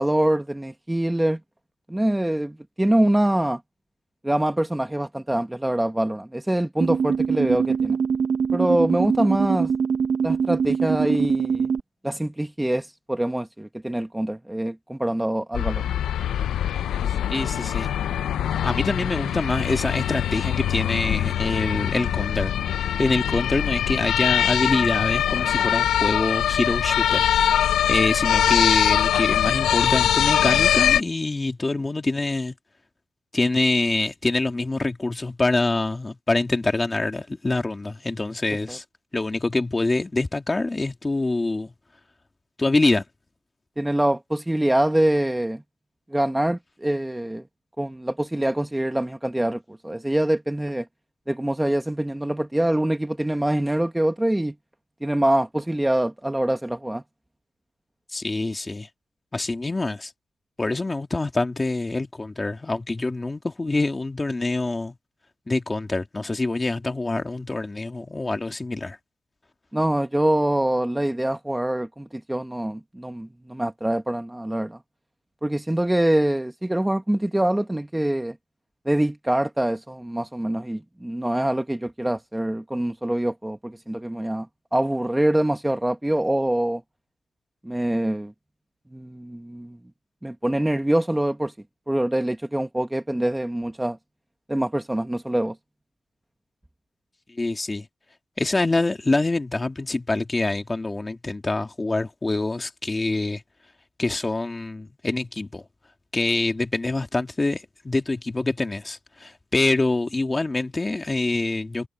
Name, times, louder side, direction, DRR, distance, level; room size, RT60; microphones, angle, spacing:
voice 1, 0.0-1.4 1.9-3.6 4.2-8.0 8.5-9.7 10.2-11.7 12.0-15.9 38.7-38.8 43.8-45.6 46.1-47.4 47.8-50.9 51.3-54.5 55.0-57.0 69.7-74.8 75.4-78.4 78.8-84.5 84.7-86.8 87.6-88.3 88.9-89.8 90.2-91.5 91.9-94.0 94.5-95.5, right 1 dB, 10° right, 1.1 m, -24 dB
sound 1, 6.8-11.8, right 6 dB, 55° right, 1.0 m, -23 dB
sound 2, 15.5-31.0, left 10 dB, 85° left, 0.7 m, -22 dB
voice 2, 17.3-17.9 18.6-27.3 27.5-32.6 33.3-38.8 39.1-41.7 42.6-43.0 58.1-58.9 59.3-60.1 60.6-65.0 65.5-69.0 97.3-97.9 98.4-103.4 104.0-105.6 106.1-111.9, left 2 dB, 20° left, 2.1 m, -25 dB
cardioid pair, 100°, 0 cm